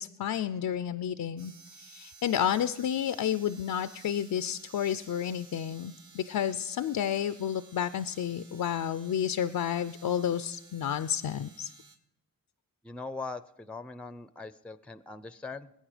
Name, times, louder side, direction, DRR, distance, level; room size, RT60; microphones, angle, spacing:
voice 1, 0.0-11.7, left 9 dB, 70° left, 12 dB, 0.5 m, -31 dB
sound 1, 1.4-12.0, right 4 dB, 55° right, 2.3 m, -55 dB
voice 2, 12.8-15.7, left 3 dB, 5° left, 14 dB, 0.6 m, -41 dB
20.5 x 8.6 x 5.0 m, 0.86 s
cardioid pair, 65°, 36 cm